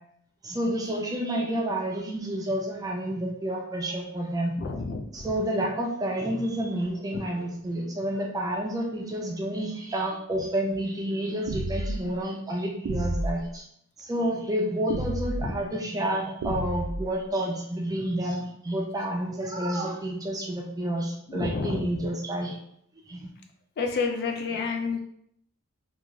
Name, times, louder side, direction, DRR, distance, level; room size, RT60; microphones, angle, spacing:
voice 1, 0.4-4.5 5.1-13.7 14.0-22.6 23.1-23.3, right 1 dB, 15° right, -1 dB, 0.4 m, -29 dB
voice 2, 4.6-5.3 7.1-7.3 15.4-15.5 21.3-22.1 23.8-25.0, left 4 dB, 45° left, 3 dB, 0.3 m, -30 dB
sound 1, 11.5-12.0 12.9-13.4 14.9-15.5 16.4-17.1, right 1 dB, 85° right, 0.4 m, -30 dB
2.4 x 2.3 x 3.0 m, 0.70 s
head